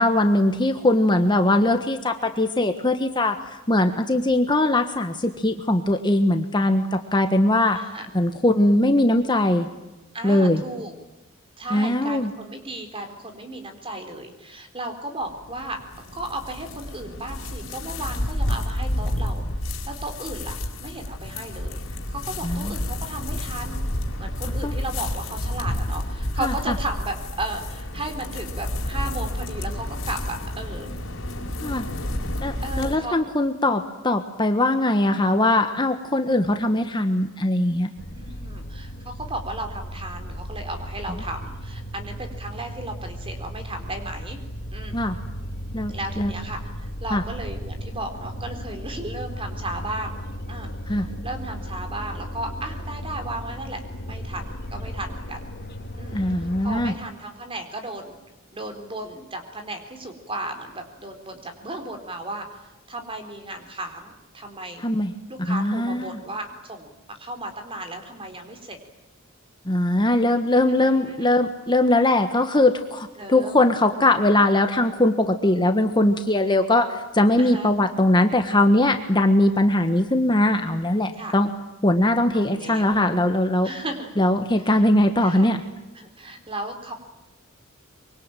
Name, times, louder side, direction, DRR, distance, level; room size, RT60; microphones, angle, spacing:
voice 1, 0.0-7.8 8.1-9.7 10.2-10.6 11.7-12.3 22.4-22.7 24.6-24.7 26.4-26.5 31.6-31.9 32.4-37.9 44.9-45.2 45.7-46.3 47.1-47.2 50.9-51.1 56.1-56.9 64.8-65.1 65.5-66.2 69.6-81.5 81.8-83.7 84.2-85.6, left 1 dB, 20° left, 6 dB, 1.4 m, -21 dB
voice 2, 7.7-8.1 10.1-10.9 11.6-15.8 16.1-19.4 19.9-23.8 24.2-30.9 32.6-33.2 38.1-44.4 44.7-45.0 45.9-50.2 50.5-55.5 56.0-58.2 58.5-64.8 65.3-68.8 70.7-71.3 73.2-73.6 77.4-77.7 81.2-81.4 82.3-83.0 83.6-84.1 84.7-84.8 85.2-85.5 86.0-86.9, right 2 dB, 25° right, 6 dB, 4.1 m, -35 dB
sound 1, 15.2-33.0, left 1 dB, 70° left, 4.4 m, -30 dB
sound 2, 38.0-56.9, equal, 50° left, 2.5 m, -35 dB
25.0 x 24.0 x 9.1 m, 1.0 s
head